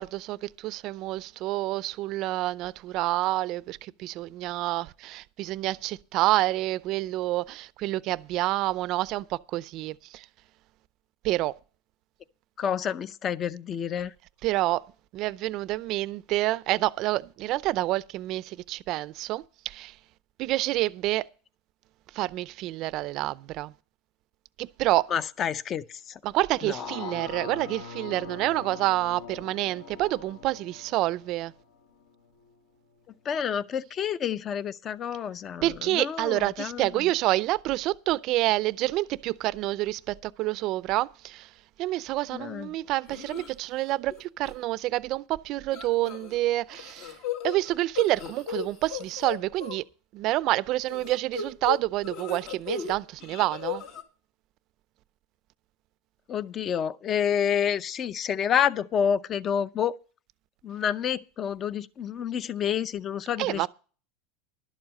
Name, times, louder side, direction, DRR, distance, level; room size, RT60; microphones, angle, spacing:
voice 1, 0.0-10.3 11.2-11.5 14.4-14.8 15.1-20.0 20.4-21.3 22.1-23.7 24.6-25.1 26.2-31.5 35.6-41.5 41.8-47.2 47.4-49.8 50.1-53.8 63.4-63.7, right 17 dB, 50° right, 0.5 m, -28 dB
voice 2, 12.6-14.1 25.1-26.2 26.7-27.1 33.3-35.6 35.9-37.0 42.3-42.7 56.3-60.0 60.6-63.7, left 8 dB, 30° left, 0.6 m, -29 dB
sound 1, 26.4-32.6 33.0-33.1, left 4 dB, 85° left, 2.3 m, -43 dB
sound 2, 43.1-43.5 43.9-44.2 44.5-44.6 45.7-46.4 46.7-49.8 50.9-52.9 53.2-54.0, left 7 dB, 65° left, 2.1 m, -35 dB
11.5 x 7.4 x 6.4 m
supercardioid pair, 130°, 0 cm